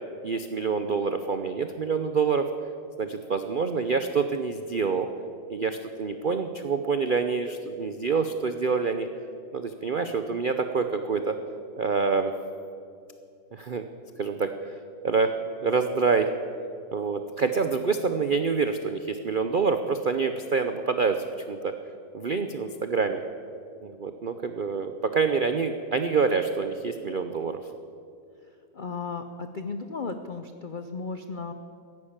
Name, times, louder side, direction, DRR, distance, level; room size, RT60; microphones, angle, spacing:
voice 1, 0.2-2.5 3.0-5.1 5.5-9.1 9.5-11.4 11.8-12.3 13.5-13.9 14.2-14.7 15.0-15.3 15.6-16.3 16.9-21.7 22.1-23.2 23.8-27.6, right 5 dB, 85° right, 8 dB, 0.4 m, -26 dB
voice 2, 28.7-31.5, left 4 dB, 75° left, 8 dB, 0.4 m, -35 dB
15.0 x 11.0 x 8.7 m, 2.4 s
omnidirectional pair, 1.9 m